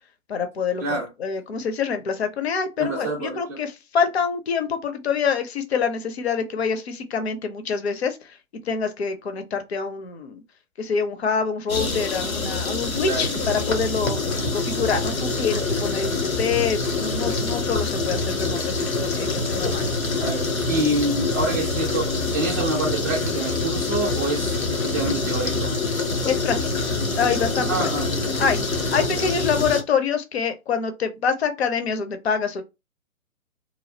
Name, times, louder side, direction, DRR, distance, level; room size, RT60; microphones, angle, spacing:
voice 1, 0.3-8.4 8.6-10.4 10.8-19.9 26.3-26.9 27.2-27.9 28.4-32.6, left 6 dB, 50° left, 0.7 m, -26 dB
voice 2, 2.8-3.6 13.0-13.5 20.2-25.7 27.7-28.2, right 2 dB, 10° right, 0.5 m, -27 dB
sound 1, 11.7-29.8, left 3 dB, 80° left, 1.0 m, -25 dB
3.1 x 2.2 x 2.7 m
figure-of-eight pair, 135°, 41 cm